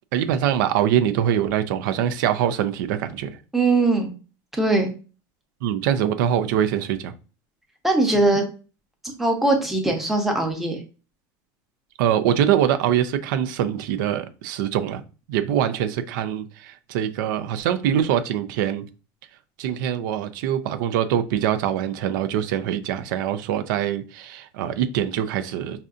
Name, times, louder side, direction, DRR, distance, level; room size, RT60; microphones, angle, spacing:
voice 1, 0.1-3.3 5.6-7.1 12.0-15.0 15.3-18.9 19.6-25.9, right 10 dB, 80° right, 0.5 m, -23 dB
voice 2, 3.5-4.1 4.6-4.9 7.8-8.4 9.0-10.8, right 2 dB, ahead, 0.7 m, -20 dB
5.4 x 2.5 x 2.4 m
cardioid pair, 165°, 10 cm